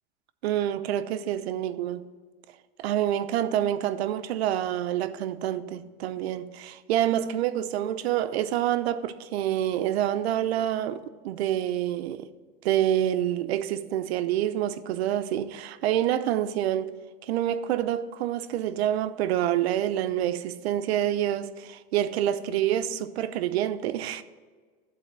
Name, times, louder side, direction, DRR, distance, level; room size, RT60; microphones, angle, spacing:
voice 1, 0.4-2.1 2.8-12.3 12.6-16.9 17.2-24.2, right 11 dB, 90° right, 0.7 m, -27 dB
12.0 x 4.2 x 7.5 m
supercardioid pair, 175°, 31 cm